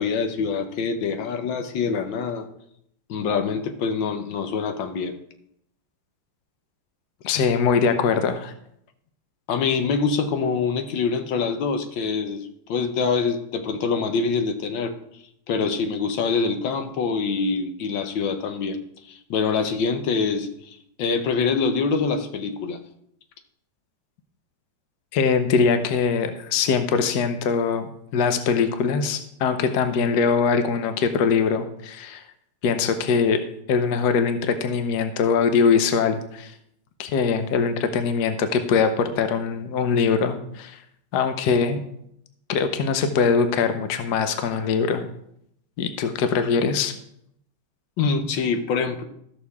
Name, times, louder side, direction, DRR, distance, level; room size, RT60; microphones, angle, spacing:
voice 1, 0.0-2.5 3.1-5.2 9.5-14.9 15.5-18.8 19.1-22.8 48.0-49.0, left 5 dB, 80° left, 7 dB, 1.6 m, -25 dB
voice 2, 7.2-8.5 25.1-32.2 32.6-33.4 33.7-36.5 37.0-40.8 41.1-41.8 42.5-45.1 45.8-46.9, left 5 dB, 65° left, 8 dB, 1.3 m, -22 dB
14.0 x 6.5 x 3.5 m, 0.74 s
omnidirectional pair, 2.0 m